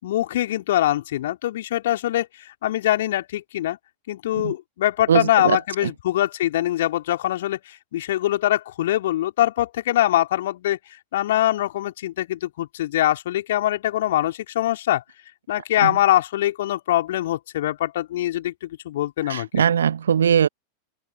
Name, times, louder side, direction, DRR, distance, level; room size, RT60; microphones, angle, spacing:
voice 1, 0.0-3.8 4.1-10.8 11.1-15.0 15.5-19.5, left 13 dB, 55° left, 3.9 m, -23 dB
voice 2, 5.1-5.9 15.8-16.0 19.2-20.5, right 8 dB, 65° right, 0.8 m, -21 dB
open air
figure-of-eight pair, 90°, 0 cm